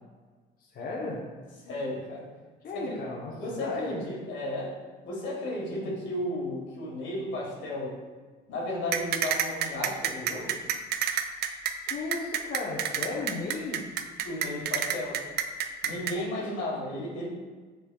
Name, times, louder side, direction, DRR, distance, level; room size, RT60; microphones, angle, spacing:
voice 1, 0.6-1.3 2.6-4.1 5.7-6.0 11.9-14.0 16.0-16.5, left 3 dB, 50° left, -3 dB, 0.8 m, -36 dB
voice 2, 1.6-2.3 2.7-3.0 3.3-8.0 8.5-10.6 14.2-15.3 15.8-17.3, left 1 dB, 70° left, -3 dB, 1.4 m, -34 dB
sound 1, 8.9-16.1, right 9 dB, 55° right, 0.4 m, -28 dB
6.7 x 3.4 x 2.2 m, 1.4 s
supercardioid pair, 80°, 20 cm